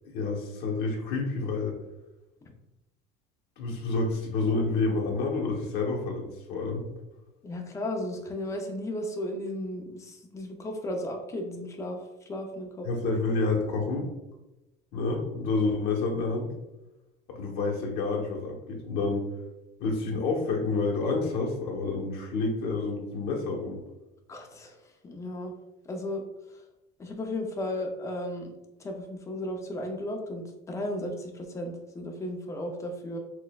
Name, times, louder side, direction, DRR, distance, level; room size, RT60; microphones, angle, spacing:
voice 1, 0.1-1.8 3.6-6.8 12.8-14.1 14.9-16.5 17.3-19.3 19.8-23.8, left 3 dB, 60° left, -1 dB, 1.0 m, -29 dB
voice 2, 7.4-12.0 12.3-12.9 24.3-24.8 25.0-25.5 25.9-26.2 27.0-28.5 28.8-33.2, left 1 dB, 15° left, 3 dB, 0.5 m, -35 dB
6.1 x 2.1 x 2.3 m, 0.97 s
cardioid pair, 145°, 19 cm